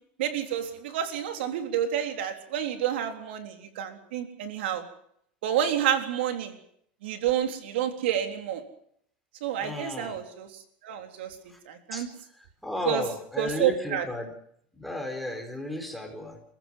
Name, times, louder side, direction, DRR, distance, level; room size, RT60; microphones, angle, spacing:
voice 1, 0.2-4.8 5.4-6.5 7.0-8.6 9.4-11.4 11.7-12.1 12.8-13.1 13.4-14.1, right 10 dB, 80° right, 6 dB, 3.8 m, -29 dB
voice 2, 9.6-10.2 11.9-12.1 12.6-14.3 14.8-16.4, left 1 dB, ahead, 4 dB, 4.4 m, -34 dB
29.0 x 15.0 x 7.7 m, 0.69 s
supercardioid pair, 145°, 6 cm